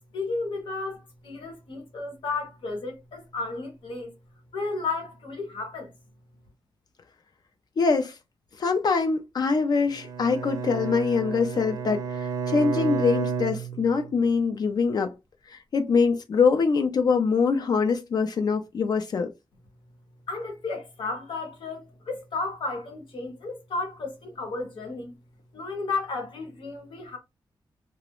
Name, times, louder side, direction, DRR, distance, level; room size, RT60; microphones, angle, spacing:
voice 1, 0.1-4.1 4.5-5.9 20.3-25.1 25.5-27.2, left 3 dB, 90° left, 1.0 m, -33 dB
voice 2, 7.8-8.1 8.6-15.1 15.5-19.3, left 5 dB, 55° left, 0.3 m, -24 dB
Bowed string instrument, 9.9-14.3, right 6 dB, 45° right, 0.5 m, -31 dB
2.3 x 2.0 x 2.8 m
wide cardioid pair, 135°, 8 cm